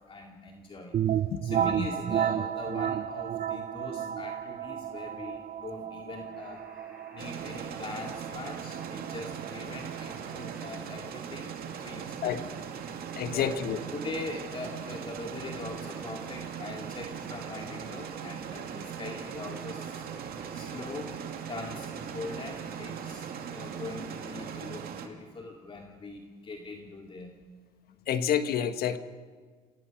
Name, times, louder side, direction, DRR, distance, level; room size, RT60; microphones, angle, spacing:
voice 1, 0.1-1.0 1.4-6.6 7.1-12.6 13.3-13.6 13.9-20.1 20.5-21.1 21.5-27.4, left 3 dB, 30° left, 1 dB, 2.4 m, -41 dB
sound 1, 0.9-10.5, right 9 dB, 45° right, 0.8 m, -32 dB
Alarm, 6.3-24.5, right 1 dB, 10° right, 6.1 m, -54 dB
sound 2, 7.2-25.1, right 8 dB, 60° right, 2.5 m, -39 dB
voice 2, 13.1-13.8 28.1-29.0, left 9 dB, 65° left, 9 dB, 1.5 m, -28 dB
28.0 x 18.0 x 6.0 m, 1.6 s
cardioid pair, 110°, 17 cm